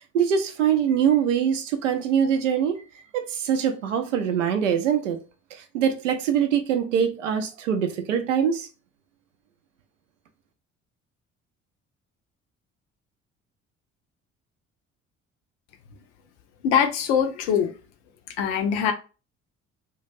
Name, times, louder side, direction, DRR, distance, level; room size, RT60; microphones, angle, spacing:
voice 1, 0.1-2.8 3.1-5.2 5.5-8.7, right 8 dB, 80° right, 0.5 m, -23 dB
voice 2, 16.6-17.7 18.4-18.9, left 8 dB, 65° left, 0.6 m, -22 dB
2.2 x 2.1 x 3.2 m
figure-of-eight pair, 50°, 36 cm